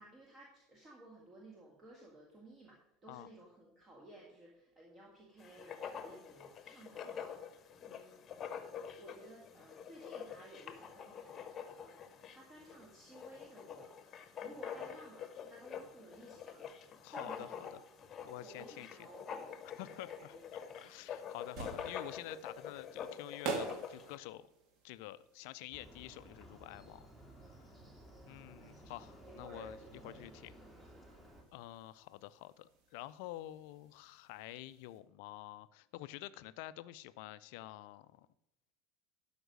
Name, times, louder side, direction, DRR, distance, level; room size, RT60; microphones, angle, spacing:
voice 1, 0.0-8.3 9.0-11.5 11.8-12.0 12.3-13.9 14.4-17.8 18.4-20.6 28.5-28.9 29.2-30.3 30.9-31.1, right 1 dB, 30° right, -1 dB, 2.0 m, -56 dB
Writing, 5.4-24.2, left 7 dB, 30° left, 1.0 m, -47 dB
voice 2, 17.0-17.8 18.2-18.9 19.8-24.5 24.8-27.0 27.4-27.7 28.3-30.5 31.5-38.3, left 15 dB, 55° left, 15 dB, 0.4 m, -49 dB
sound 1, 21.3-35.0, right 4 dB, 45° right, 1.6 m, -49 dB
Motorcycle, 25.7-31.4, right 1 dB, 10° right, 1.9 m, -55 dB
12.5 x 5.2 x 6.2 m, 0.83 s
figure-of-eight pair, 70°, 0 cm